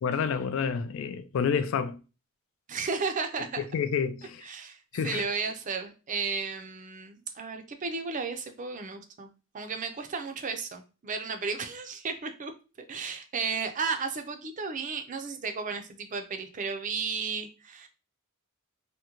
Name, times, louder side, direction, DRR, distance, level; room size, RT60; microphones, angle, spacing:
voice 1, 0.0-2.0 3.6-4.5 4.9-5.2, left 6 dB, 65° left, 0.3 m, -29 dB
voice 2, 2.7-3.6 4.5-4.8 5.0-9.3 9.5-12.5 12.9-17.9, right 5 dB, 35° right, 0.4 m, -33 dB
3.6 x 2.1 x 2.9 m
head